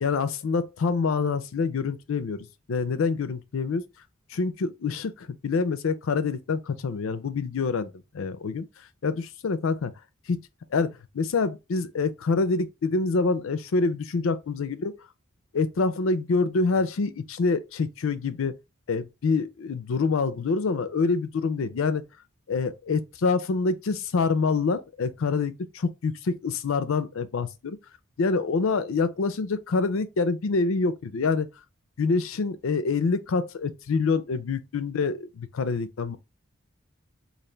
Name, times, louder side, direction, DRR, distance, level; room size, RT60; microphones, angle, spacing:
voice 1, 0.0-3.8 4.3-8.7 9.0-9.9 10.3-10.5 10.7-15.0 15.5-18.5 18.9-22.0 22.5-27.8 28.2-31.5 32.0-36.2, left 4 dB, 75° left, 0.4 m, -26 dB
3.3 x 2.5 x 3.7 m
head